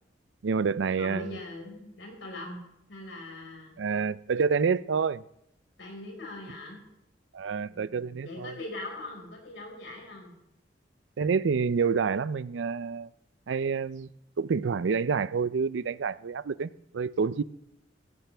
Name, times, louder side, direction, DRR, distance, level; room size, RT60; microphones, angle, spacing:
voice 1, 0.4-1.4 3.8-5.2 7.3-8.5 11.2-13.1 13.5-14.1 14.4-17.4, right 5 dB, 80° right, 0.4 m, -28 dB
voice 2, 1.0-2.6 2.9-3.8 5.8-6.8 7.6-10.3, left 2 dB, 85° left, 4.9 m, -41 dB
16.0 x 15.0 x 3.4 m
head